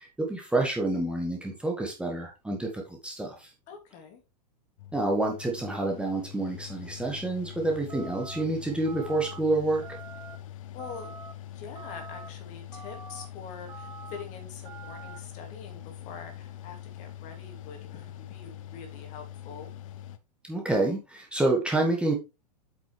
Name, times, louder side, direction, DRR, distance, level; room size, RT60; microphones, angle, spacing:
voice 1, 0.0-3.5 4.9-9.8 20.4-22.1, right 2 dB, 5° right, 0 dB, 1.8 m, -28 dB
voice 2, 3.7-4.2 10.7-11.1 11.5-19.7, left 6 dB, 35° left, 5 dB, 2.6 m, -45 dB
Mechanical fan, 4.8-20.2, left 11 dB, 55° left, 0.9 m, -44 dB
sound 1, 7.9-8.4 8.9-9.4 9.8-10.4 10.8-11.3 11.8-12.3 12.7-13.3 13.7-14.2 14.7-15.2, right 5 dB, 70° right, 1.4 m, -45 dB
8.2 x 6.1 x 3.3 m, 0.26 s
figure-of-eight pair, 100°, 21 cm